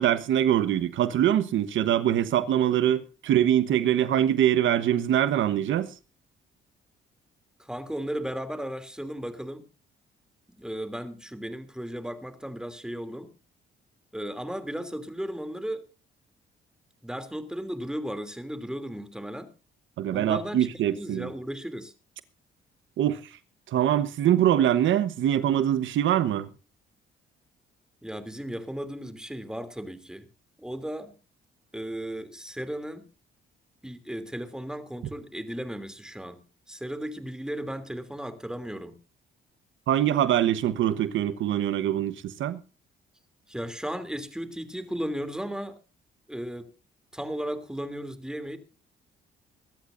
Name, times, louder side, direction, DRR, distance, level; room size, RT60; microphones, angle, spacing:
voice 1, 0.0-5.9 20.0-21.3 23.0-23.3 23.7-26.5 39.9-42.6, right 11 dB, 75° right, 1.2 m, -23 dB
voice 2, 7.6-9.6 10.6-13.3 14.1-15.9 17.0-19.5 20.1-21.9 28.0-30.3 30.6-31.1 31.7-33.0 33.8-36.4 36.7-38.9 43.5-45.8 46.3-46.7 47.1-48.6, equal, 5° right, 3.0 m, -35 dB
23.5 x 13.0 x 2.6 m
cardioid pair, 90°, 20 cm